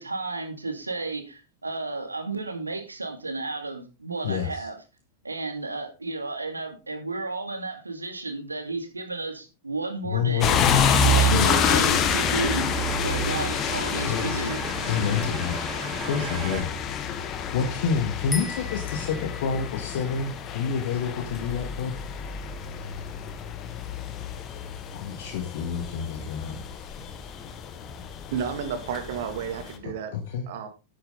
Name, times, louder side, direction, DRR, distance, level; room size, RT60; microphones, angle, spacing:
voice 1, 0.0-4.7 5.2-10.5 11.0-12.7 13.0-14.6, right 3 dB, 80° right, 6 dB, 2.4 m, -32 dB
voice 2, 4.2-4.7 10.0-10.8 11.3-12.0 14.1-14.5 14.9-15.6 16.1-16.7 17.5-21.9 24.9-26.6 29.8-30.5, left 6 dB, 55° left, 4 dB, 1.9 m, -28 dB
sound 1, 10.4-29.8, left 4 dB, 30° left, 1.6 m, -28 dB
sound 2, 11.4-16.6, right 4 dB, 15° right, 4.5 m, -37 dB
sound 3, 18.3-21.7, left 4 dB, 15° left, 1.4 m, -40 dB
voice 3, 28.3-30.1 30.5-30.7, right 7 dB, 55° right, 7 dB, 2.5 m, -31 dB
11.5 x 8.7 x 4.0 m, 0.29 s
figure-of-eight pair, 90°, 0 cm